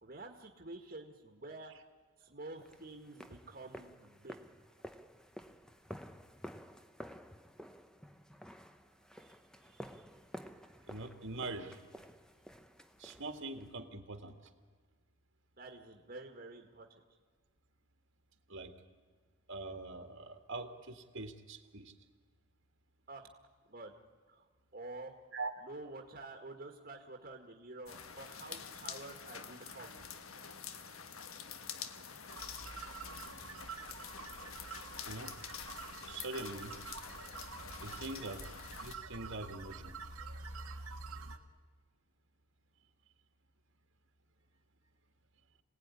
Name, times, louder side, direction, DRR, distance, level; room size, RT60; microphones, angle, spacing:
voice 1, 0.0-1.7 2.2-4.4 15.6-17.0 23.1-23.3 23.7-23.9 24.3-25.1 25.6-30.1 39.1-39.3, right 2 dB, 40° right, 3 dB, 1.8 m, -49 dB
sound 1, 2.6-13.7, equal, 5° left, 0.8 m, -52 dB
voice 2, 10.9-11.8 13.0-14.4 18.5-18.7 19.5-21.9 25.3-25.5 35.1-35.3 36.1-36.7 37.8-38.4 38.8-40.0, right 2 dB, 60° right, 6 dB, 2.0 m, -43 dB
sound 2, 27.9-38.9, left 7 dB, 70° left, 1.3 m, -47 dB
sound 3, 32.3-41.4, right 4 dB, 85° right, 1.8 m, -47 dB
26.5 x 18.0 x 9.8 m, 1.5 s
head